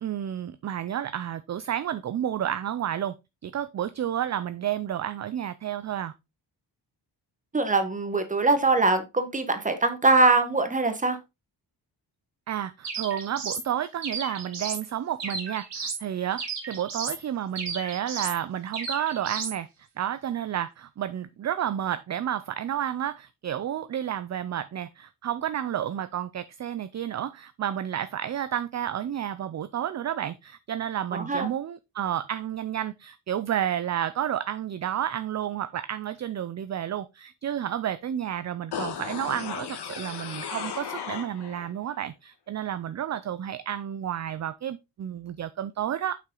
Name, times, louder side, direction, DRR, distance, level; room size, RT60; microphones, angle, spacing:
voice 1, 0.0-3.2 3.4-6.1 12.5-19.7 20.0-46.2, right 10 dB, 40° right, 0.4 m, -31 dB
voice 2, 7.5-11.2 31.1-31.5, right 3 dB, 20° right, 1.3 m, -22 dB
sound 1, 12.8-13.7 14.0-14.9 15.2-16.0 16.4-17.2 17.6-18.4 18.7-19.6, right 4 dB, 80° right, 2.9 m, -34 dB
sound 2, 38.7-41.7 42.0-42.1, left 7 dB, 70° left, 1.4 m, -35 dB
7.4 x 5.9 x 3.8 m
wide cardioid pair, 165°, 42 cm